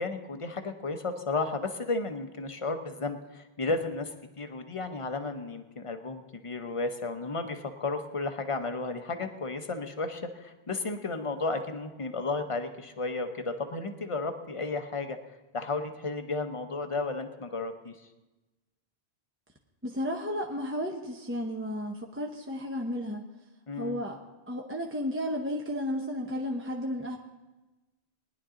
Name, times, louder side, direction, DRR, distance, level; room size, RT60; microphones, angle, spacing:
voice 1, 0.0-4.1 4.4-15.2 15.5-17.9 23.7-24.0, left 3 dB, 35° left, 7 dB, 0.9 m, -33 dB
voice 2, 19.8-23.3 23.8-24.2 24.5-27.2, equal, 15° right, 0 dB, 0.8 m, -33 dB
20.0 x 10.5 x 3.8 m, 1.1 s
omnidirectional pair, 1.1 m